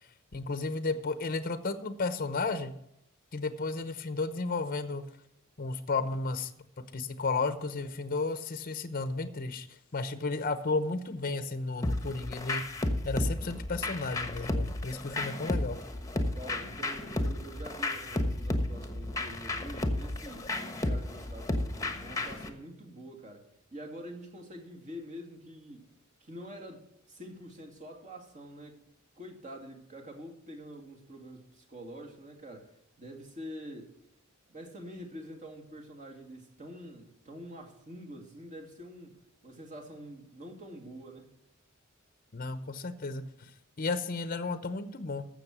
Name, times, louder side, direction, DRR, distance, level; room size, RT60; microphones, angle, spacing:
voice 1, 0.3-2.7 3.3-5.0 5.6-6.5 6.8-12.6 13.0-15.8 42.3-45.3, left 3 dB, 45° left, 0.8 m, -33 dB
sound 1, 11.8-22.5, left 1 dB, 15° left, 1.1 m, -33 dB
voice 2, 16.3-25.8 26.2-28.8 29.2-32.7 33.0-33.9 34.5-39.2 39.4-41.3, equal, 35° right, 2.4 m, -46 dB
14.5 x 6.5 x 6.1 m
head